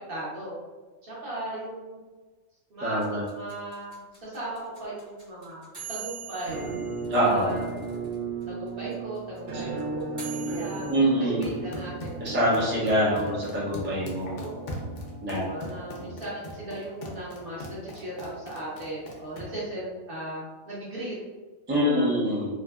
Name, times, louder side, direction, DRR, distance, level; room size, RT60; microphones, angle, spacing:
voice 1, 0.1-0.6 1.0-2.0 2.7-6.7 7.2-7.6 8.5-11.9 12.6-12.7 13.1-13.4 14.3-14.8 15.3-21.1 21.7-22.1, right 1 dB, 55° right, -7 dB, 0.7 m, -37 dB
voice 2, 2.8-3.2 7.1-7.5 9.5-9.6 10.9-11.5 12.2-14.4 15.2-15.4 16.0-16.1 21.7-22.5, equal, 15° right, -7 dB, 0.4 m, -25 dB
sound 1, 3.0-8.1 8.4-8.5 8.7-11.0, right 8 dB, 30° right, 1.0 m, -42 dB
Musical instrument, 6.5-16.3, right 4 dB, 75° right, 1.0 m, -36 dB
sound 2, 11.3-19.7, equal, 75° left, 0.4 m, -41 dB
2.6 x 2.2 x 2.2 m, 1.3 s
omnidirectional pair, 1.4 m